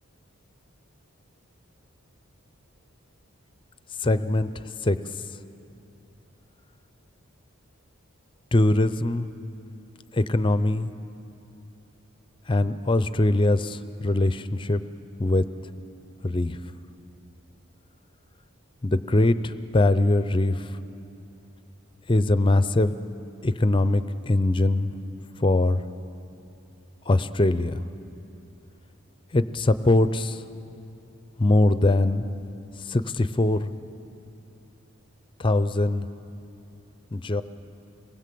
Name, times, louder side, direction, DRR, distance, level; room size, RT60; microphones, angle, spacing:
voice 1, 4.0-5.0 8.5-9.3 10.1-10.9 12.5-14.8 15.2-15.4 16.2-16.6 18.8-20.8 22.1-22.9 23.4-24.9 25.4-25.8 27.1-27.8 29.3-30.4 31.4-32.3 32.8-33.7 35.4-36.1 37.1-37.4, left 2 dB, 25° left, 13 dB, 0.5 m, -22 dB
27.0 x 20.0 x 7.6 m, 2.8 s
head